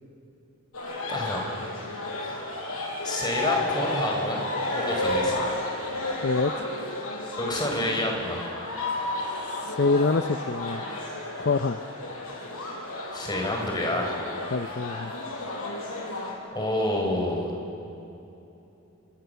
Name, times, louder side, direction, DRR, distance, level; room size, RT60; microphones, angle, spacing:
sound 1, 0.7-16.3, left 2 dB, 80° left, 5.8 m, -32 dB
voice 1, 1.1-1.5 2.2-2.4 3.0-4.4 4.8-5.4 7.4-8.4 13.1-14.2 16.5-17.6, left 1 dB, 20° left, 0 dB, 5.0 m, -28 dB
voice 2, 6.2-6.7 9.4-10.9 11.4-11.8 14.5-15.1, left 3 dB, 50° left, 9 dB, 0.5 m, -26 dB
29.0 x 26.5 x 6.9 m, 2.9 s
head